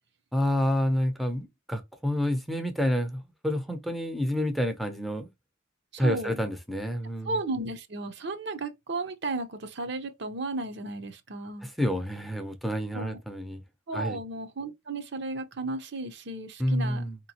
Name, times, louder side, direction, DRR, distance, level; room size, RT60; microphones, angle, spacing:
voice 1, 0.3-5.3 6.0-7.3 11.6-13.6 13.9-14.2 16.6-17.2, equal, ahead, 0.6 m, -28 dB
voice 2, 5.9-6.4 7.2-11.7 12.9-13.2 13.9-17.1, right 2 dB, 65° right, 0.8 m, -34 dB
4.5 x 2.9 x 2.8 m
head